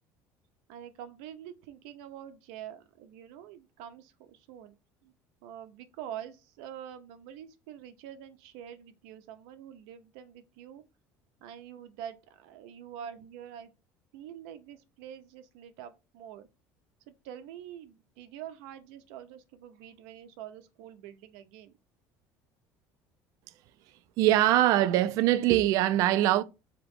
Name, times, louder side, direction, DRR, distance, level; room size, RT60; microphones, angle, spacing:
voice 1, 0.7-4.7 5.0-5.1 5.4-10.8 11.4-13.7 14.1-16.5 17.1-21.7, right 10 dB, 90° right, 0.6 m, -46 dB
voice 2, 24.2-26.4, right 14 dB, 50° right, 0.3 m, -22 dB
3.8 x 2.9 x 3.5 m
cardioid pair, 180°, 7 cm